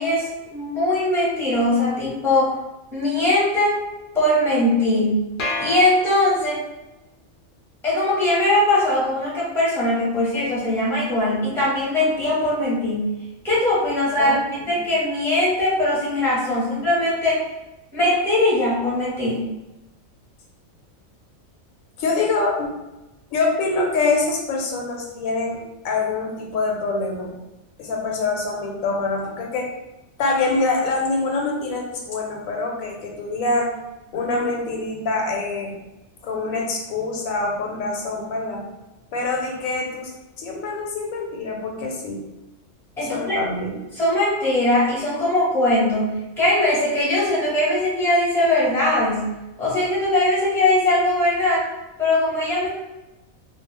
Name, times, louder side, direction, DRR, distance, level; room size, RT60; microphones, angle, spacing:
voice 1, 0.0-2.6 2.9-3.8 4.1-5.2 5.6-6.6 7.8-13.1 13.4-14.4 14.7-17.4 17.9-19.4 43.0-43.4 44.0-49.3 49.6-51.7 52.0-52.7, left 1 dB, ahead, -7 dB, 0.7 m, -20 dB
sound 1, 5.4-6.8, left 2 dB, 60° left, 0.5 m, -30 dB
voice 2, 14.2-14.7 22.0-22.7 23.3-27.3 27.8-29.7 30.2-33.7 34.1-35.7 36.2-38.6 39.1-40.1 40.4-42.2 43.0-43.8, left 3 dB, 85° left, 0 dB, 1.0 m, -25 dB
2.3 x 2.1 x 3.2 m, 1.0 s
omnidirectional pair, 1.4 m